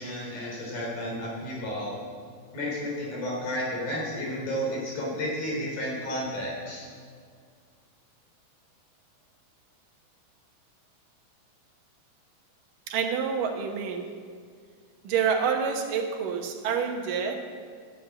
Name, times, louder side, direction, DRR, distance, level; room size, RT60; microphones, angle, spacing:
voice 1, 0.0-1.9 2.5-6.9, equal, 80° left, -3 dB, 5.3 m, -32 dB
voice 2, 12.9-14.1 15.0-17.4, right 6 dB, 75° right, 3 dB, 2.7 m, -27 dB
11.0 x 8.3 x 8.3 m, 2.1 s
omnidirectional pair, 4.0 m